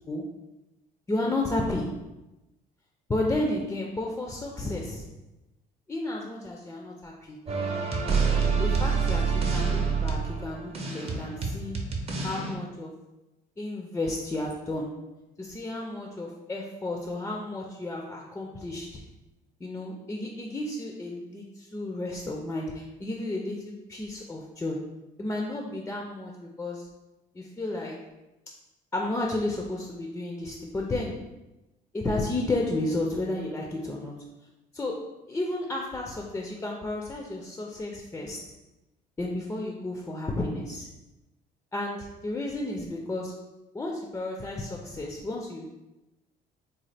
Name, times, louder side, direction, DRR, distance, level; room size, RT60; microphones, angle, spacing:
voice 1, 1.1-2.0 3.1-5.1 5.9-7.4 8.6-11.8 12.2-13.0 13.6-15.1 15.4-19.0 19.6-24.9 25.2-26.9 27.3-28.1 28.9-31.3 31.9-34.3 34.7-38.5 39.2-40.9 41.7-43.4 43.7-45.7, left 2 dB, 15° left, 0 dB, 0.4 m, -32 dB
sound 1, 7.5-12.5, right 5 dB, 35° right, 0.6 m, -27 dB
3.9 x 2.2 x 3.2 m, 1.0 s
cardioid pair, 110°, 17 cm